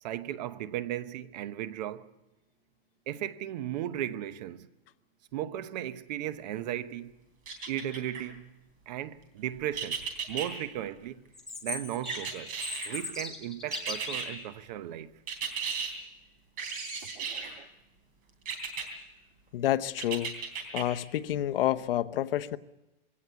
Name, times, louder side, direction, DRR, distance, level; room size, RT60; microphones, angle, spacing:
voice 1, 0.0-2.1 3.1-4.7 5.3-7.2 7.7-8.4 8.9-11.2 11.6-12.5 12.8-15.1 17.0-17.7, right 12 dB, 45° right, 0.9 m, -36 dB
sound 1, 7.5-8.2 9.8-10.5 12.1-13.0 13.7-14.3 15.3-15.9 16.6-17.5 18.5-18.9 20.0-20.8 21.3-21.4, right 6 dB, 25° right, 3.3 m, -35 dB
Chirp tweet, 11.3-14.3, left 3 dB, ahead, 1.9 m, -39 dB
voice 2, 19.5-20.3 20.7-22.6, left 12 dB, 65° left, 0.9 m, -29 dB
22.0 x 17.0 x 8.1 m
supercardioid pair, 165°, 31 cm